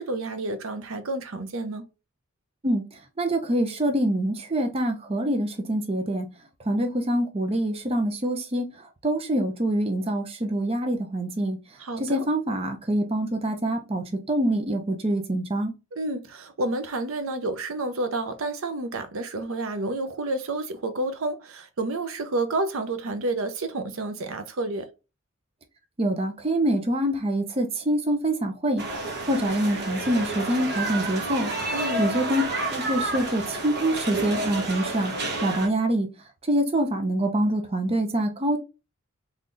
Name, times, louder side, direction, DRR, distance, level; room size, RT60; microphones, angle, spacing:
voice 1, 0.0-1.8 11.8-12.3 15.9-24.9 31.7-32.1, right 2 dB, 70° right, 0.6 m, -30 dB
voice 2, 3.2-6.3 6.7-11.6 12.0-15.7 26.0-28.8 29.3-31.5 32.0-32.4 32.7-35.1 35.4-36.1 36.5-38.6, right 1 dB, 25° right, 0.6 m, -25 dB
sound 1, 28.8-35.7, right 2 dB, 50° right, 1.0 m, -30 dB
3.8 x 3.2 x 2.5 m
head